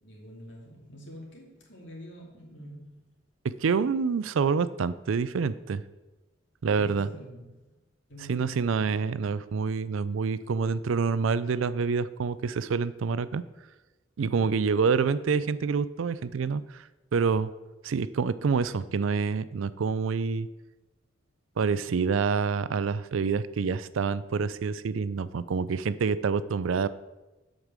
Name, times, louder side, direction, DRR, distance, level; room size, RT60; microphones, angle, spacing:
voice 1, 0.0-3.0 6.8-7.7 8.1-9.1 14.2-14.5, right 1 dB, 65° left, -2 dB, 2.8 m, -46 dB
voice 2, 3.6-5.8 6.6-7.1 8.3-13.4 14.2-16.8 17.1-17.5 17.8-20.5 21.6-26.9, right 5 dB, 80° right, 16 dB, 0.4 m, -27 dB
8.0 x 5.2 x 7.4 m, 1.1 s
head